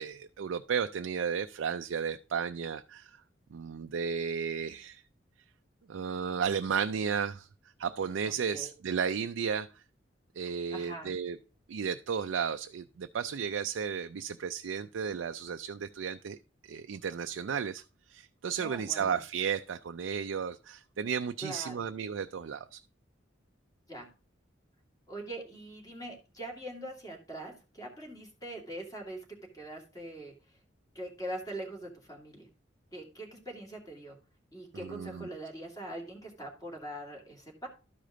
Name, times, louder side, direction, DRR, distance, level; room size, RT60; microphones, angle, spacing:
voice 1, 0.0-3.2 3.5-5.0 5.9-7.5 7.8-9.8 10.4-11.4 11.7-16.4 16.6-17.8 18.1-22.8 34.7-35.3, right 7 dB, 85° right, 0.4 m, -33 dB
voice 2, 8.2-8.7 10.7-11.1 18.6-19.2 21.4-21.8 23.9-24.1 25.1-30.6 30.9-32.5 32.9-34.2 34.5-37.7, right 1 dB, 20° left, 2.5 m, -42 dB
12.5 x 5.0 x 3.8 m
head